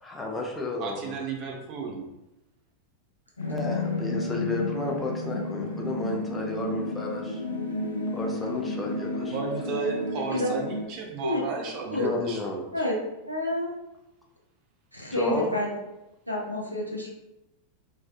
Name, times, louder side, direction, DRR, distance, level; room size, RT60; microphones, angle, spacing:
voice 1, 0.0-1.2 3.5-7.4 8.1-9.5 11.9-12.6 15.1-15.6, left 2 dB, 10° left, -1 dB, 0.4 m, -32 dB
voice 2, 0.8-2.0 9.2-12.7, right 5 dB, 40° right, 1 dB, 0.5 m, -33 dB
sound 1, 3.4-10.8, left 2 dB, 80° left, 0.4 m, -31 dB
voice 3, 13.3-13.7 14.9-15.7 16.3-17.1, left 1 dB, 90° right, -2 dB, 0.5 m, -28 dB
2.5 x 2.3 x 2.3 m, 0.92 s
figure-of-eight pair, 90°, 0 cm